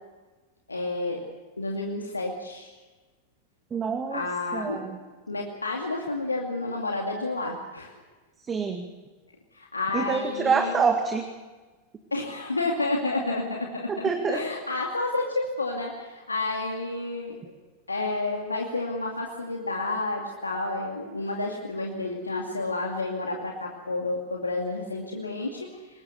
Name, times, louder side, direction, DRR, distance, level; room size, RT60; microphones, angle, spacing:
voice 1, 0.7-1.2 1.6-2.7 4.1-4.8 5.3-8.0 9.5-10.9 12.1-17.5 17.9-26.0, left 2 dB, 80° left, 0 dB, 2.3 m, -30 dB
voice 2, 3.7-4.2 4.5-5.0 8.5-8.9 9.9-11.3 13.9-14.4, right 5 dB, 20° right, 5 dB, 2.0 m, -26 dB
24.5 x 20.5 x 6.9 m, 1.3 s
figure-of-eight pair, 90°, 0 cm